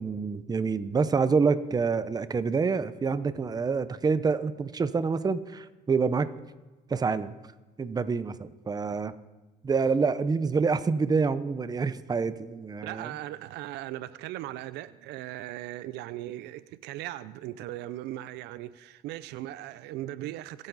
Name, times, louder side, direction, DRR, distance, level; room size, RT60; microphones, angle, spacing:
voice 1, 0.0-6.3 6.9-7.3 7.8-9.1 9.6-13.1, right 5 dB, 25° right, 0.7 m, -27 dB
voice 2, 12.8-20.7, right 14 dB, 85° right, 0.5 m, -38 dB
27.0 x 9.1 x 4.1 m
cardioid pair, 110°, 17 cm